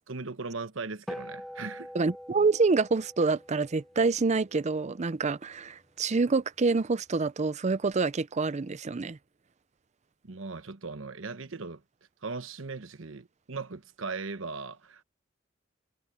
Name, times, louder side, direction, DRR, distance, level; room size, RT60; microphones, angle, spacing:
voice 1, 0.1-1.9 10.2-11.8 12.2-15.0, right 4 dB, 70° right, 1.1 m, -38 dB
sound 1, 1.1-5.7, equal, ahead, 1.1 m, -45 dB
voice 2, 1.9-9.2, right 4 dB, 35° right, 0.5 m, -27 dB
head